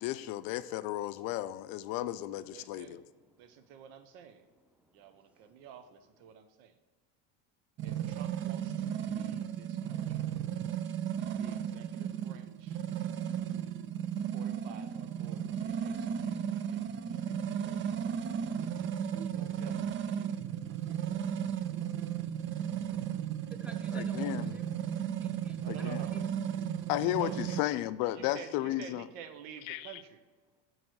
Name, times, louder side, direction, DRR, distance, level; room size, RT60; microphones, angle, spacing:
voice 1, 0.0-3.0 23.9-24.6 25.7-26.0 26.9-29.1 29.7-30.0, left 15 dB, 65° left, 14 dB, 0.5 m, -34 dB
voice 2, 1.2-2.0 2.5-3.9 4.1-6.3 22.9-26.2, equal, 5° right, 6 dB, 0.7 m, -58 dB
voice 3, 2.5-3.0 3.4-4.4 4.9-6.7 7.8-10.2 11.4-12.8 14.3-16.9 17.3-17.9 19.1-21.0 25.6-26.2 27.2-27.6 28.1-30.2, right 8 dB, 75° right, 9 dB, 0.8 m, -50 dB
sound 1, 7.8-27.6, right 9 dB, 35° right, 0.4 m, -35 dB
8.9 x 3.2 x 6.3 m, 1.4 s
supercardioid pair, 110°, 37 cm